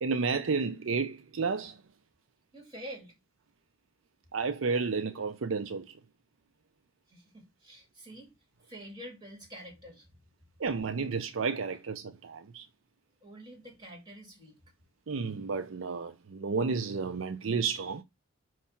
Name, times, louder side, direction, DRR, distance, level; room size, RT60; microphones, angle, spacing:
voice 1, 0.0-1.8 4.3-5.9 10.6-12.7 15.1-18.0, right 4 dB, 75° right, 0.5 m, -31 dB
voice 2, 2.5-3.2 7.1-8.3 8.6-10.1 13.2-14.6, equal, 20° right, 2.9 m, -47 dB
5.5 x 3.2 x 5.7 m
head